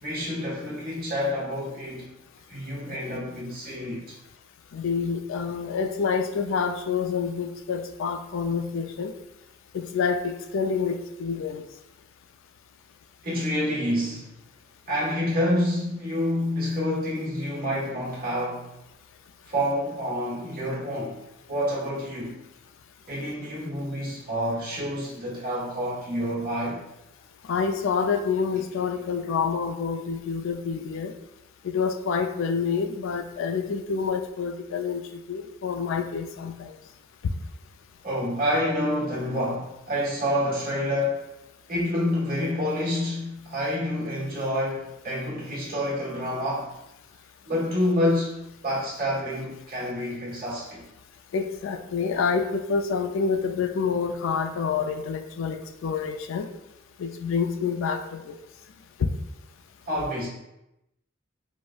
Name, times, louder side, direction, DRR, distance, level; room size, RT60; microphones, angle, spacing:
voice 1, 0.0-2.1 2.5-4.2 13.2-14.3 14.9-18.8 19.5-22.4 23.1-26.8 38.0-41.3 41.7-46.8 47.5-50.8 59.9-60.3, equal, 50° right, 1.1 m, -28 dB
voice 2, 4.7-9.1 9.7-11.6 27.5-31.1 31.6-35.0 35.3-36.7 51.3-56.5 57.0-58.3 59.0-59.1, left 5 dB, 65° left, 0.3 m, -27 dB
4.7 x 2.1 x 2.2 m
head